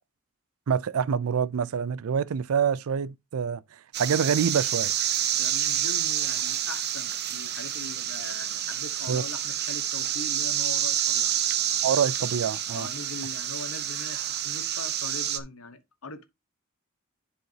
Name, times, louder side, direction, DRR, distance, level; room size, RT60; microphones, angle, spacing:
voice 1, 0.7-3.6 4.0-4.9 9.1-9.2 11.8-12.9, right 7 dB, 80° right, 0.4 m, -26 dB
sound 1, 3.9-15.4, right 10 dB, 50° right, 0.9 m, -28 dB
voice 2, 5.4-11.3 12.7-16.2, left 3 dB, 85° left, 1.2 m, -41 dB
10.5 x 4.9 x 2.8 m
head